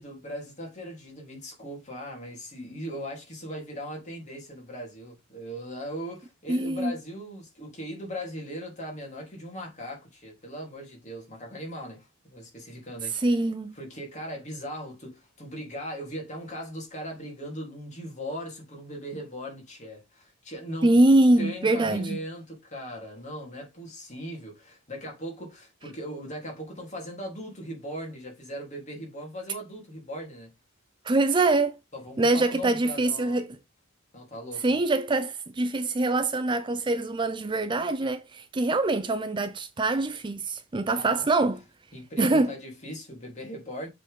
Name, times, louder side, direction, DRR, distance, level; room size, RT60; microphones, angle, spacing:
voice 1, 0.0-13.4 13.8-21.0 21.4-30.5 31.9-33.4 34.1-34.8 41.0-41.1 41.9-43.9, equal, 35° left, 3.5 m, -39 dB
voice 2, 6.5-6.9 13.1-13.7 20.8-22.2 31.1-31.8 32.2-33.5 34.6-41.6 42.2-42.5, right 2 dB, 25° right, 0.5 m, -24 dB
7.2 x 4.5 x 3.7 m
head